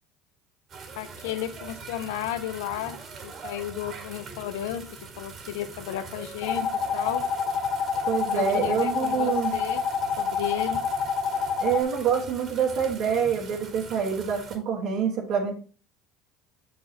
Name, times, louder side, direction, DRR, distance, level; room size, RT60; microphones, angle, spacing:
sound 1, 0.7-14.6, right 4 dB, 45° right, 1.8 m, -43 dB
voice 1, 1.0-7.3 8.2-9.8 10.2-10.8, left 11 dB, 75° left, 12 dB, 0.6 m, -33 dB
sound 2, 6.4-11.8, left 6 dB, 60° left, 1.3 m, -27 dB
voice 2, 8.1-9.5 11.6-15.5, right 7 dB, 60° right, -1 dB, 1.6 m, -26 dB
6.6 x 5.6 x 2.8 m, 0.36 s
hypercardioid pair, 75°, 0 cm